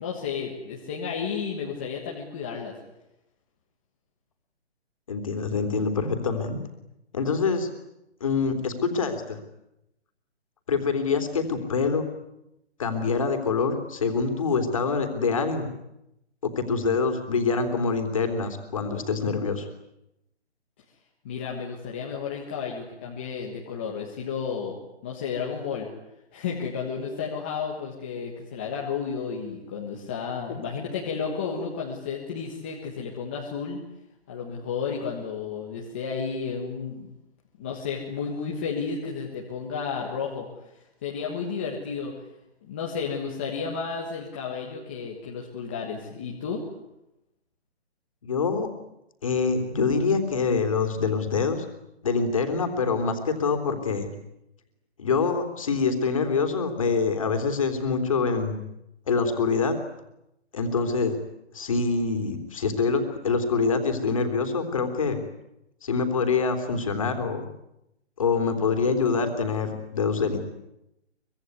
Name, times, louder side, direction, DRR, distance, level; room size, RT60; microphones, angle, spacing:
voice 1, 0.0-2.7 21.2-25.9 26.3-33.8 34.3-37.1 37.6-40.5 41.0-42.1 42.6-46.6, left 6 dB, 10° left, -2 dB, 1.4 m, -32 dB
voice 2, 5.1-6.6 7.1-7.7 8.2-9.4 10.7-12.1 12.8-15.7 16.4-19.7 48.2-48.7 49.2-51.7 52.0-54.1 55.0-58.6 59.1-59.8 60.5-61.2 61.5-65.2 65.8-67.4 68.2-70.4, left 4 dB, 30° left, 6 dB, 3.4 m, -25 dB
24.5 x 24.5 x 9.7 m, 0.87 s
hypercardioid pair, 180°, 34 cm